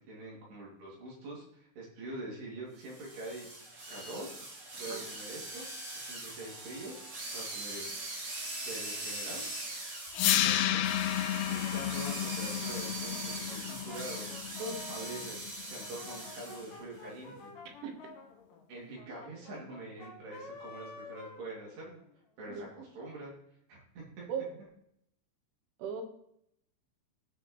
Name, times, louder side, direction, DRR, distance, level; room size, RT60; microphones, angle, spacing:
voice 1, 0.1-1.5 1.8-3.5 3.9-4.3 4.8-5.7 5.9-6.9 7.3-7.9 8.6-9.4 10.3-11.0 11.5-14.3 14.9-15.4 15.7-17.5 18.7-22.0 22.4-23.3 23.7-24.3, right 2 dB, 60° right, -4 dB, 4.5 m, -44 dB
sound 1, 2.8-16.8, right 2 dB, 45° right, 4.1 m, -41 dB
voice 2, 4.7-5.1 14.6-14.8 17.8-18.1 22.5-22.6 24.3-24.6 25.8-26.0, right 5 dB, 85° right, 4 dB, 3.8 m, -38 dB
sound 2, 10.1-16.2, left 12 dB, 85° left, 2.3 m, -32 dB
Brass instrument, 10.1-15.3 15.8-22.1, left 3 dB, 60° left, 3.9 m, -50 dB
16.0 x 6.4 x 3.1 m, 0.73 s
omnidirectional pair, 5.4 m